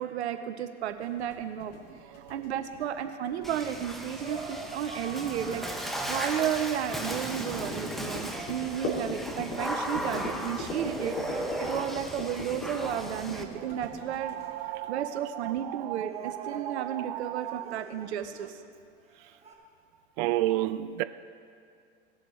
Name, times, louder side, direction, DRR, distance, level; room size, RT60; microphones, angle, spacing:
voice 1, 0.0-1.7 2.3-14.4 14.9-18.6, right 9 dB, 70° right, 0.8 m, -33 dB
sound 1, 1.0-14.8, left 1 dB, 50° left, 2.9 m, -40 dB
Water / Splash splatter, 3.4-13.4, equal, ahead, 0.8 m, -36 dB
sound 2, 4.2-6.8 8.2-9.5 10.8-14.0 15.4-18.7 19.1-19.5, right 3 dB, 15° right, 2.0 m, -46 dB
voice 2, 13.6-17.8 20.2-21.0, right 15 dB, 45° right, 0.5 m, -33 dB
19.0 x 7.4 x 3.2 m
hypercardioid pair, 100°, 34 cm